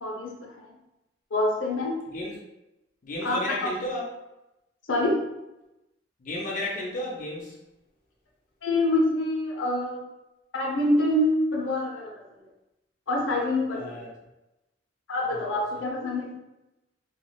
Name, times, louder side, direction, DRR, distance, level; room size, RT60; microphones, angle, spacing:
voice 1, 0.0-0.7 1.3-2.0 3.2-3.7 4.9-5.2 8.6-10.0 10.5-12.1 13.1-14.0 15.1-16.4, left 1 dB, 90° left, -2 dB, 0.7 m, -26 dB
voice 2, 2.1-2.4 3.0-4.1 6.2-7.6 13.7-14.1 15.3-15.6, left 1 dB, 45° left, -3 dB, 0.5 m, -33 dB
3.0 x 2.4 x 2.3 m, 0.96 s
head